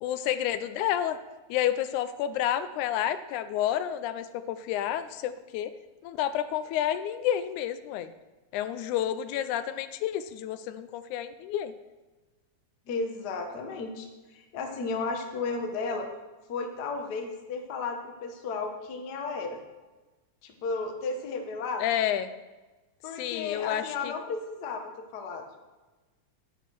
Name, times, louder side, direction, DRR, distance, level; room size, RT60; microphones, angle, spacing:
voice 1, 0.0-1.2 1.5-5.7 6.0-8.1 8.5-11.7 21.8-22.3 23.2-24.1, left 11 dB, 85° left, 12 dB, 2.0 m, -30 dB
voice 2, 12.9-14.1 14.3-16.1 16.5-19.6 20.4-21.8 23.0-25.4, left 4 dB, 50° left, 3 dB, 1.2 m, -34 dB
10.0 x 10.0 x 4.6 m, 1.2 s
omnidirectional pair, 3.4 m